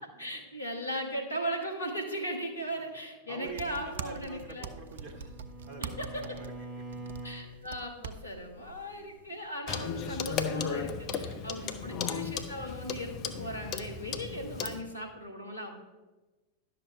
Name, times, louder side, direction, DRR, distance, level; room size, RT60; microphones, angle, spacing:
voice 1, 0.0-4.7 5.8-6.3 7.2-15.8, equal, 80° left, 2 dB, 1.3 m, -38 dB
voice 2, 3.3-5.4 5.7-6.7 7.5-7.7 8.5-9.2 11.2-12.1, right 4 dB, 35° right, 3 dB, 1.2 m, -47 dB
sound 1, 3.4-9.5, right 6 dB, 60° right, 0.4 m, -44 dB
Bowed string instrument, 4.4-7.5, right 1 dB, 10° right, 1.2 m, -45 dB
Clock, 9.7-14.8, left 6 dB, 35° left, 0.6 m, -35 dB
11.0 x 6.6 x 3.3 m, 1.2 s
figure-of-eight pair, 90°, 0 cm